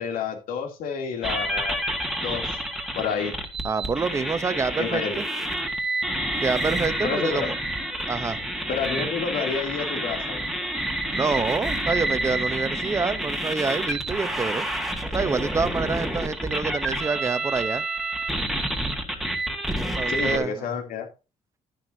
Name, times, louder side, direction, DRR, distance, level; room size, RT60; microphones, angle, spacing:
voice 1, 0.0-1.8 2.2-2.6 2.9-3.3 4.8-5.2 7.0-7.5 8.7-10.5 20.1-21.1, left 6 dB, 85° left, 2.8 m, -29 dB
sound 1, 1.2-20.4, right 1 dB, ahead, 1.6 m, -28 dB
voice 2, 3.6-5.2 6.4-7.6 8.1-8.4 11.1-14.7 15.1-17.8 19.9-20.5, right 4 dB, 20° right, 0.7 m, -27 dB
12.0 x 10.5 x 2.7 m
cardioid pair, 175°, 14 cm